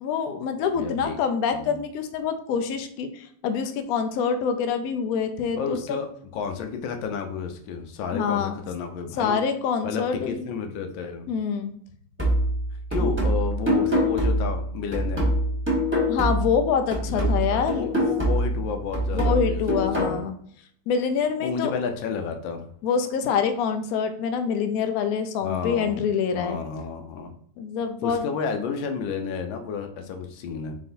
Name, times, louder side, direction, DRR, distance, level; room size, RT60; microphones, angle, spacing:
voice 1, 0.0-6.0 8.1-8.5 9.2-10.4 11.3-11.7 13.0-13.1 16.1-18.0 19.1-20.3 20.9-21.7 22.8-26.6 27.6-28.3, left 6 dB, 70° left, 7 dB, 0.9 m, -26 dB
voice 2, 0.7-1.2 1.5-1.8 5.6-9.4 9.8-11.3 12.9-15.3 17.1-20.2 21.4-22.7 25.4-26.0 26.3-27.3 28.0-30.8, left 6 dB, 90° left, 6 dB, 1.4 m, -31 dB
sound 1, 12.2-16.6 16.9-20.2, equal, 5° right, 1.1 m, -24 dB
4.0 x 3.7 x 2.6 m, 0.63 s
omnidirectional pair, 2.0 m